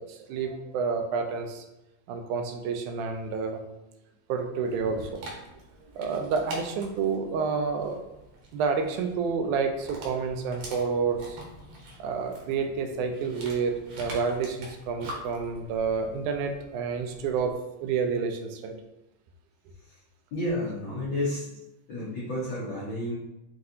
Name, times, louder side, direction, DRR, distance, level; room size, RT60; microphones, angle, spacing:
voice 1, 0.0-1.6 2.1-3.6 4.3-5.3 5.8-8.0 8.5-11.4 12.0-17.5 17.8-18.8, right 5 dB, 85° right, 4 dB, 2.0 m, -29 dB
Dog, 4.7-17.5, right 1 dB, 65° right, 1.8 m, -45 dB
voice 2, 20.3-21.5 21.9-23.1, left 1 dB, 90° left, -7 dB, 1.0 m, -31 dB
5.9 x 2.5 x 2.7 m, 0.97 s
omnidirectional pair, 3.4 m